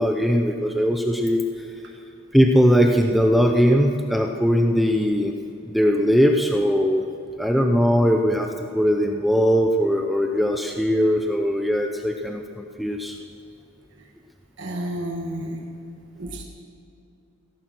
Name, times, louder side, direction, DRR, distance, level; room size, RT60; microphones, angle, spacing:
voice 1, 0.0-1.4 2.3-5.3 5.7-7.0 7.4-8.5 8.7-13.2, equal, ahead, 3 dB, 0.6 m, -20 dB
voice 2, 14.6-15.7 16.2-16.4, right 1 dB, 55° right, 1 dB, 1.5 m, -31 dB
16.0 x 13.5 x 6.2 m, 2.8 s
head